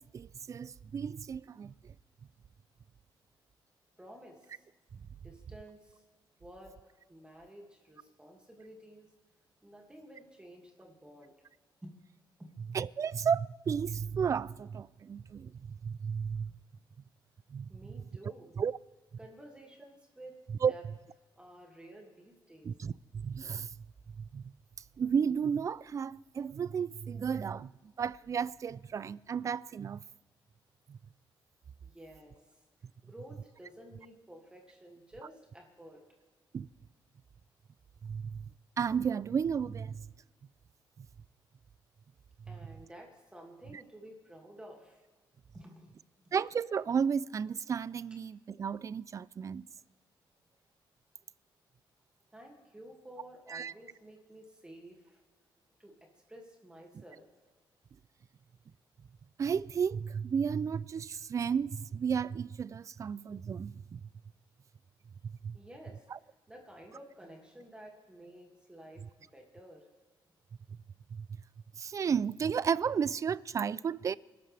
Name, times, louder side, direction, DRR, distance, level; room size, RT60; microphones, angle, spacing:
voice 1, 0.0-1.9 12.7-16.5 17.5-17.7 18.6-18.7 20.6-20.7 22.6-23.9 24.2-24.4 25.0-27.7 28.0-30.0 30.9-31.0 36.5-36.7 38.0-38.5 38.8-40.1 41.0-41.1 42.5-42.6 46.3-49.6 53.5-53.7 59.4-64.0 65.4-65.6 66.1-66.2 71.1-71.3 71.8-74.2, right 7 dB, 40° right, 0.4 m, -33 dB
voice 2, 4.0-4.6 5.2-6.0 6.4-9.1 9.6-11.3 11.8-12.0 12.4-12.5 17.7-18.5 19.2-20.4 20.7-20.8 21.3-22.7 31.8-32.3 33.0-36.0 42.5-45.0 45.5-46.0 52.3-55.2 55.8-57.3 65.5-66.1 66.5-69.9, right 1 dB, 10° right, 2.3 m, -52 dB
28.5 x 12.5 x 3.4 m
cardioid pair, 115°, 9 cm